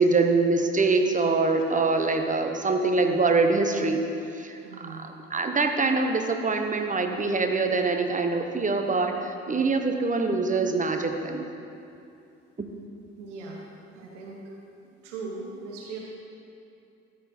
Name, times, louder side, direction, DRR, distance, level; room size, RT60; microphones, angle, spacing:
voice 1, 0.0-4.1 4.3-11.4 12.6-12.7, right 3 dB, 20° right, 5 dB, 1.1 m, -24 dB
voice 2, 4.6-5.1 13.2-13.7 13.9-14.6 15.0-16.0, right 3 dB, 80° right, -2 dB, 1.2 m, -39 dB
14.0 x 4.7 x 4.3 m, 2.6 s
hypercardioid pair, 50°, 36 cm